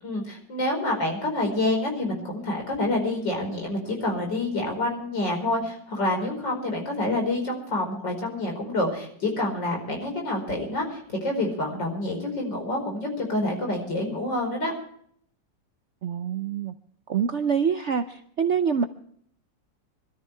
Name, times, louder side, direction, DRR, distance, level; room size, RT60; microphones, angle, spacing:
voice 1, 0.0-14.7, left 2 dB, 75° left, 1 dB, 5.5 m, -27 dB
voice 2, 16.0-16.7 17.1-18.9, right 7 dB, 60° right, 8 dB, 0.7 m, -25 dB
25.5 x 13.0 x 3.3 m, 0.64 s
omnidirectional pair, 2.0 m